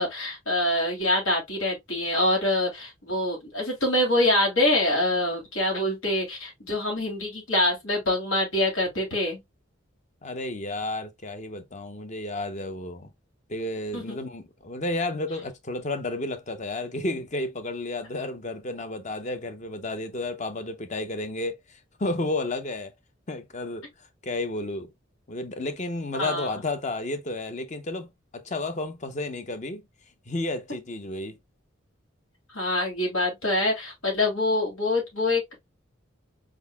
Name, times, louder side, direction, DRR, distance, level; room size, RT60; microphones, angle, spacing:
voice 1, 0.0-9.4 13.9-14.2 26.2-26.6 32.5-35.5, left 1 dB, 85° left, 2.6 m, -25 dB
voice 2, 10.2-13.1 13.5-22.9 23.3-24.9 25.3-29.8 30.3-31.4, left 2 dB, 35° left, 0.7 m, -32 dB
4.5 x 3.9 x 2.2 m
head